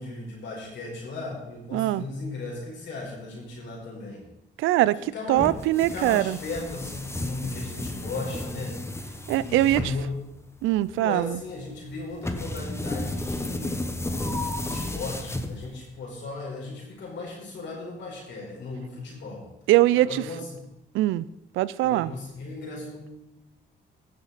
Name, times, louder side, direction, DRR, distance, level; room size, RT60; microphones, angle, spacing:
voice 1, 0.0-4.2 5.1-5.5 5.8-8.8 9.1-10.1 10.9-19.5 19.9-20.6 21.8-23.1, left 3 dB, 70° left, -2 dB, 4.7 m, -37 dB
voice 2, 1.7-2.0 4.6-6.4 9.3-9.9 10.6-11.4 19.7-20.2 20.9-21.3 21.6-22.1, right 15 dB, 90° right, 18 dB, 0.4 m, -22 dB
sound 1, 5.3-16.0, left 1 dB, 15° left, 1.0 m, -33 dB
16.0 x 6.6 x 4.1 m, 0.90 s
cardioid pair, 90°, 20 cm